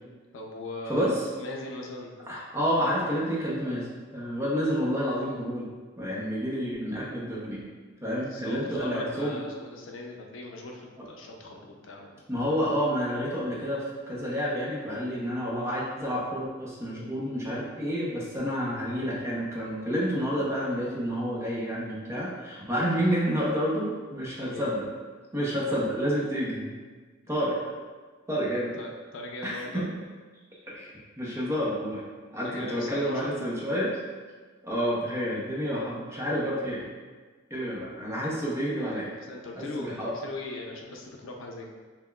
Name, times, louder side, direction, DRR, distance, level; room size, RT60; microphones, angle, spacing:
voice 1, 0.3-2.1 8.3-12.2 24.4-24.7 27.4-27.5 28.8-29.9 32.4-33.3 38.9-41.7, left 2 dB, 75° left, 1 dB, 0.5 m, -39 dB
voice 2, 0.9-1.2 2.3-5.7 6.0-7.6 8.0-9.4 12.3-24.8 25.3-26.7 27.3-27.5 28.3-28.8 29.4-29.8 30.7-32.0 32.3-33.9 34.6-36.9 37.5-39.1 39.6-40.1, equal, 15° right, -5 dB, 0.7 m, -29 dB
5.6 x 2.1 x 2.3 m, 1.4 s
head